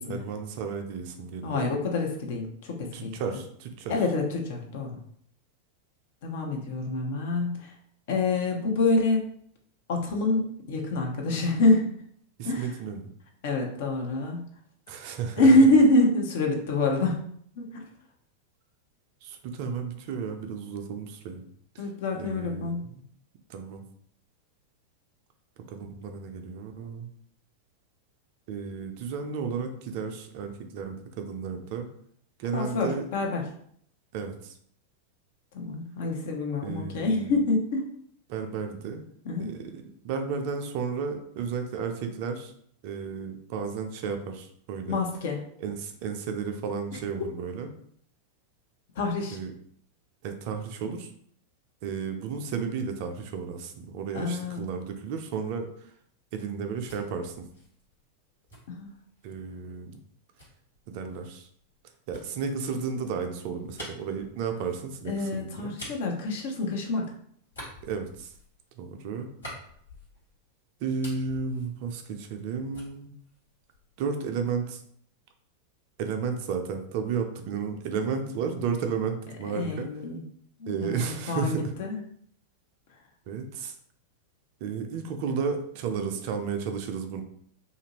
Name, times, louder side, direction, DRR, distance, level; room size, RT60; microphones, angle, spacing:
voice 1, 0.1-1.7 2.9-4.0 12.4-13.1 14.9-15.7 19.2-21.4 21.7-21.8 22.1-23.0 23.5-23.8 25.6-27.1 28.5-31.9 32.4-33.1 34.1-34.5 36.6-37.4 38.3-39.0 39.4-42.5 42.8-45.0 45.6-47.7 49.3-49.5 50.2-51.1 51.8-55.9 56.3-57.4 59.2-60.0 60.9-61.5 62.1-65.8 67.8-68.3 68.8-69.3 70.8-73.1 74.0-74.8 76.0-79.9 80.7-81.7 83.3-83.7 84.6-87.2, right 5 dB, 45° right, 5 dB, 0.4 m, -33 dB
voice 2, 1.4-3.2 3.9-5.0 6.2-7.7 8.1-9.2 9.9-11.9 12.4-12.7 13.4-14.5 15.4-17.2 17.6-17.8 21.8-22.9 32.5-33.4 35.5-37.9 39.3-39.5 44.9-45.4 49.0-49.4 54.1-54.7 58.7-58.9 65.1-67.1 79.5-80.2 80.6-82.0, left 2 dB, 55° left, 1 dB, 0.6 m, -26 dB
sound 1, 56.5-59.5 60.4-67.0 67.4-70.5 70.8-72.5 72.7-74.0, left 1 dB, 75° left, 1.4 m, -48 dB
2.7 x 2.4 x 2.9 m, 0.65 s
figure-of-eight pair, 90°, 0 cm